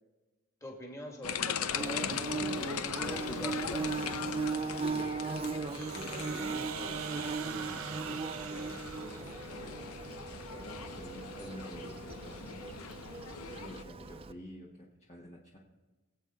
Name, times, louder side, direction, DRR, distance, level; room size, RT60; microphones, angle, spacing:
voice 1, 0.6-2.4 2.8-4.0, equal, 15° left, 0 dB, 2.0 m, -44 dB
sound 1, 1.2-13.8, left 7 dB, 90° left, 0.7 m, -40 dB
Bird / Buzz, 1.7-14.3, right 4 dB, 25° right, 0.4 m, -38 dB
voice 2, 4.9-9.9 10.5-12.9 13.5-15.6, equal, 30° left, -3 dB, 1.3 m, -49 dB
sound 2, 5.7-9.7, right 7 dB, 75° right, 0.6 m, -43 dB
24.0 x 8.2 x 3.8 m, 1.2 s
head